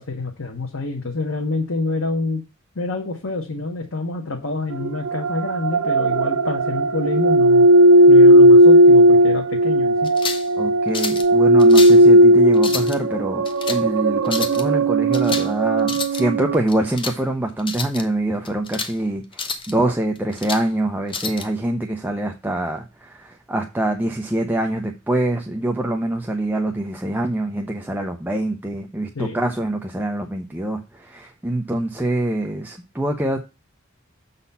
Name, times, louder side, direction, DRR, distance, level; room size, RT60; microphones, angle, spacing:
voice 1, 0.0-2.4 2.7-7.7 8.1-10.1 29.1-29.4, left 3 dB, 90° left, 1 dB, 1.2 m, -27 dB
sound 1, 4.7-16.6, right 1 dB, 85° right, 0.6 m, -15 dB
sound 2, 10.0-10.5 10.9-11.3 11.6-12.0 12.5-13.0 13.5-13.8 14.3-14.6 15.1-15.5 15.8-16.2 16.7-17.2 17.6-18.0 18.5-18.9 19.3-19.7 20.2-20.7 21.1-21.5, left 5 dB, 25° left, 0.8 m, -29 dB
voice 2, 10.6-13.4 13.7-33.4, right 1 dB, 10° right, 2 dB, 0.6 m, -25 dB
7.1 x 4.2 x 5.4 m, 0.27 s
head